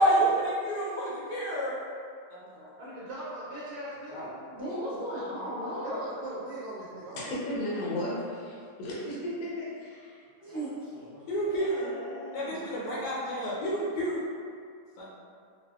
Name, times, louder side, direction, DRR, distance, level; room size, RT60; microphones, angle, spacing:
voice 1, 0.0-1.7 2.3-2.7 4.1-4.3 11.3-12.0 12.3-14.2 15.0-15.1, right 1 dB, 85° left, -8 dB, 1.4 m, -29 dB
voice 2, 2.8-4.3 5.8-7.3 11.1-11.4, right 1 dB, 75° right, -9 dB, 1.1 m, -40 dB
voice 3, 4.5-6.1 10.4-11.1, equal, 15° right, -12 dB, 1.1 m, -35 dB
voice 4, 7.2-10.2 11.5-12.6, left 1 dB, 65° left, -6 dB, 1.1 m, -36 dB
3.9 x 2.1 x 2.3 m, 2.2 s
omnidirectional pair, 1.7 m